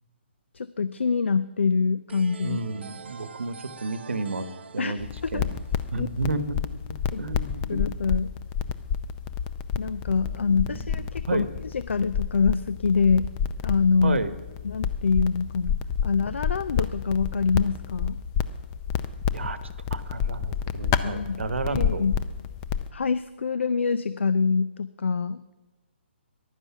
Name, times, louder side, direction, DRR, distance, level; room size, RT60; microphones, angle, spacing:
voice 1, 0.5-2.6 4.8-4.9 5.3-5.4 6.0-6.1 7.1-7.2 7.7-8.3 9.8-11.4 11.7-13.3 13.6-14.2 14.6-15.7 16.0-18.2 21.0-22.1 22.9-25.4, left 5 dB, 90° left, 15 dB, 0.5 m, -25 dB
sound 1, 2.1-6.7, right 6 dB, 65° right, 0.7 m, -46 dB
voice 2, 2.4-4.5 4.7-5.1 5.3-5.5 5.9-7.8 10.5-11.5 14.0-14.3 19.3-19.6 19.9-22.0, right 3 dB, 85° right, 12 dB, 1.2 m, -31 dB
sound 2, 5.0-22.9, left 8 dB, 20° left, 0.5 m, -30 dB
14.5 x 11.0 x 5.9 m, 1.2 s
hypercardioid pair, 160°, 6 cm